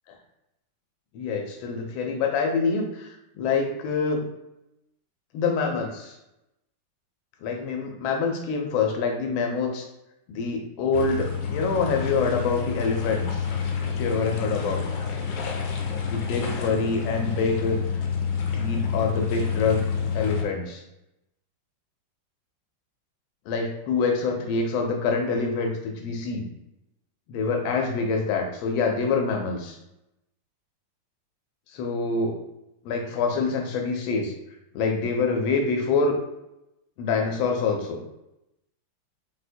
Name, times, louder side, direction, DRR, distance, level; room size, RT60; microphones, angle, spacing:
voice 1, 1.1-4.2 5.3-6.1 7.4-9.9 10.3-13.4 13.9-14.9 16.1-17.8 18.5-19.8 20.1-20.8 23.5-26.4 27.3-29.8 31.7-32.4 32.8-34.3 34.7-36.2 37.0-38.0, left 4 dB, 90° left, 2 dB, 1.4 m, -26 dB
sound 1, 10.9-20.4, left 6 dB, 75° left, 1.0 m, -28 dB
4.4 x 2.1 x 2.5 m, 0.88 s
omnidirectional pair, 2.1 m